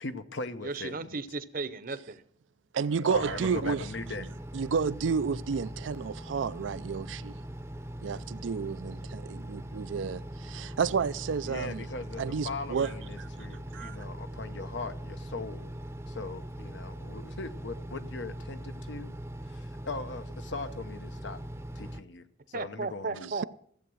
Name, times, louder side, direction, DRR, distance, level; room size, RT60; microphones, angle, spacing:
voice 1, 0.0-1.2 3.0-4.3 11.4-15.7 16.1-19.1 19.5-21.4 21.7-23.3, left 3 dB, 75° left, 0.9 m, -40 dB
voice 2, 0.6-2.2 22.5-23.4, right 3 dB, 50° right, 0.7 m, -35 dB
voice 3, 2.7-3.9 4.5-7.4 8.0-11.8 12.2-12.9 13.2-13.3 13.7-14.0 23.2-23.4, right 6 dB, 85° right, 0.4 m, -31 dB
Engine, 3.1-22.0, right 1 dB, 15° right, 0.6 m, -41 dB
15.5 x 8.0 x 6.2 m
head